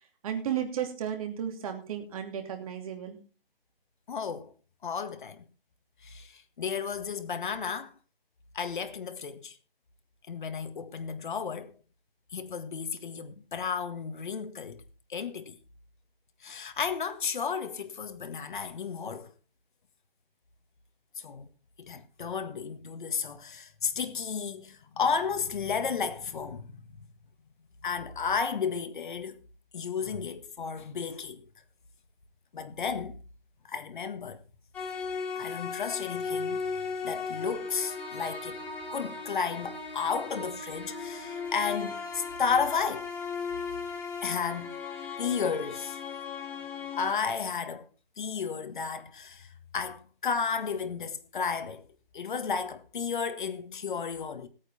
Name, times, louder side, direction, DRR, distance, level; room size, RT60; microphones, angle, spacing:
voice 1, 0.2-3.2, right 9 dB, 35° right, 2.8 m, -33 dB
voice 2, 4.1-4.5 4.8-5.4 6.0-7.9 8.5-9.6 10.3-11.7 12.3-14.8 15.1-15.6 16.4-19.3 21.2-21.5 21.8-27.0 27.8-29.4 29.7-31.5 32.5-33.2 33.7-34.4 35.4-38.6 38.9-43.1 44.2-44.8 45.2-46.0 46.9-47.9 48.2-51.8 52.1-54.5, left 6 dB, 55° left, 1.7 m, -33 dB
sound 1, 34.7-47.1, left 5 dB, 5° left, 2.6 m, -37 dB
17.5 x 9.0 x 4.2 m
figure-of-eight pair, 150°, 30 cm